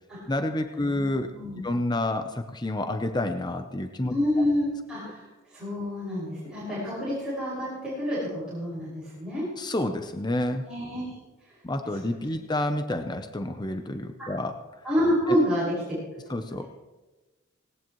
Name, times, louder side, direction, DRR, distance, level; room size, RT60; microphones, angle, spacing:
voice 1, 0.3-1.3 1.6-4.1 9.6-10.7 11.6-14.6 16.3-16.7, left 1 dB, 20° left, 7 dB, 0.7 m, -29 dB
voice 2, 0.8-1.6 4.1-9.4 10.7-11.1 14.2-14.3 14.8-16.2, equal, 5° right, -10 dB, 5.6 m, -28 dB
18.5 x 18.0 x 3.1 m, 1.2 s
head